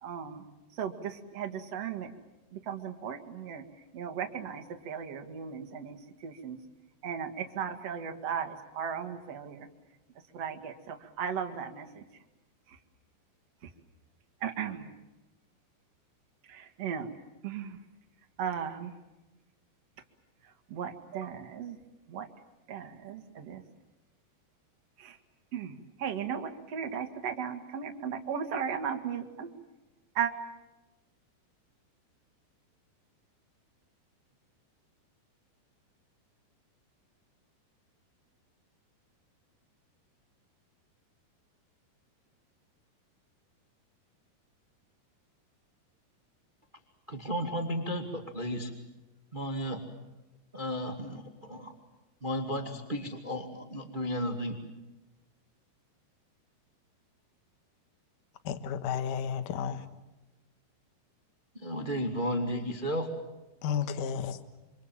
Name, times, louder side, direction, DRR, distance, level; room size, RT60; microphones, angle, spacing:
voice 1, 0.0-0.4 0.7-2.1 2.5-3.6 3.9-6.6 7.0-9.7 10.3-12.0 13.6-13.7 14.4-14.9 16.5-17.1 17.4-17.8 18.4-18.9 20.7-21.8 22.1-22.3 22.7-23.6 25.0-25.2 25.5-29.5 30.1-30.3, right 7 dB, 45° right, 2.5 m, -36 dB
voice 2, 47.1-48.7 49.3-49.8 50.5-51.7 52.2-54.5 61.5-63.1, equal, 15° right, 1.7 m, -33 dB
voice 3, 58.4-59.9 63.6-64.4, left 7 dB, 60° left, 2.5 m, -32 dB
27.5 x 26.5 x 7.5 m
omnidirectional pair, 4.9 m